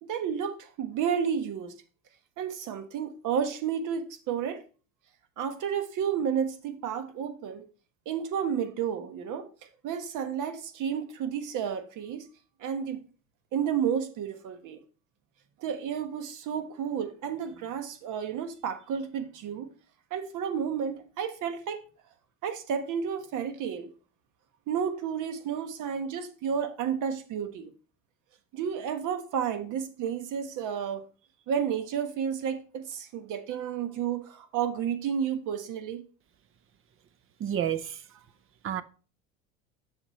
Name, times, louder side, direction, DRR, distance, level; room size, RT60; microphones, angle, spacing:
voice 1, 0.0-1.8 2.4-4.6 5.4-7.7 8.0-9.5 9.8-12.3 12.6-13.0 13.5-14.8 15.6-19.7 20.1-21.8 22.4-23.9 24.7-27.7 28.5-31.0 31.5-36.0, right 8 dB, 50° right, 1.3 m, -31 dB
voice 2, 37.4-37.9 38.6-38.8, right 10 dB, 35° right, 0.7 m, -29 dB
7.3 x 6.5 x 3.2 m
hypercardioid pair, 90°, 38 cm